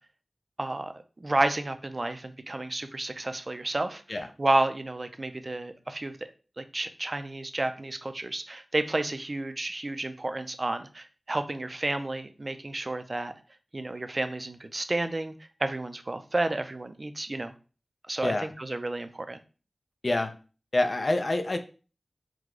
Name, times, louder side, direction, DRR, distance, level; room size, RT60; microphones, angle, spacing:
voice 1, 0.6-0.9 1.2-6.2 6.6-13.3 13.7-15.3 15.6-17.5 18.1-19.4, right 2 dB, 45° right, 9 dB, 0.5 m, -31 dB
voice 2, 20.7-21.6, left 2 dB, 55° left, 7 dB, 0.5 m, -26 dB
4.8 x 2.2 x 3.7 m, 0.36 s
wide cardioid pair, 45°, 0 cm